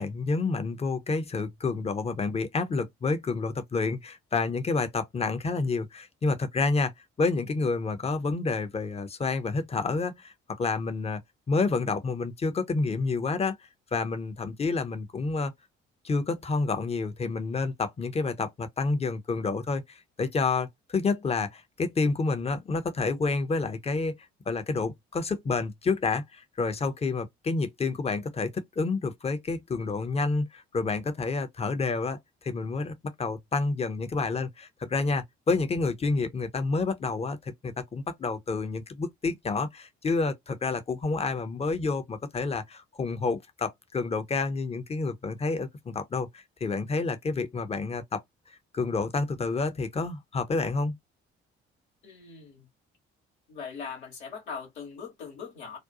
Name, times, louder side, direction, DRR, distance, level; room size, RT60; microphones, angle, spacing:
voice 1, 0.0-6.9 7.2-11.2 11.5-13.6 13.9-15.5 16.0-24.2 24.5-48.2 48.5-51.0, left 3 dB, 20° left, 0.6 m, -29 dB
voice 2, 52.0-52.7 53.5-55.8, left 6 dB, 75° left, 1.1 m, -40 dB
2.5 x 2.2 x 2.6 m
figure-of-eight pair, 45°, 32 cm